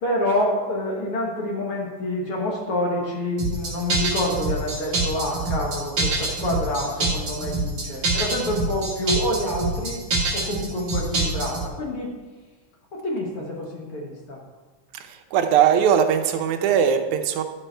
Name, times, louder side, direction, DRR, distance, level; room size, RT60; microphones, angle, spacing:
voice 1, 0.0-10.0 10.3-12.1 12.9-14.4, left 1 dB, 55° left, -1 dB, 1.7 m, -27 dB
sound 1, 3.4-11.7, right 3 dB, 35° right, 2.4 m, -25 dB
voice 2, 14.9-17.4, right 8 dB, 80° right, 6 dB, 2.1 m, -20 dB
12.0 x 5.3 x 4.4 m, 1.4 s
omnidirectional pair, 3.5 m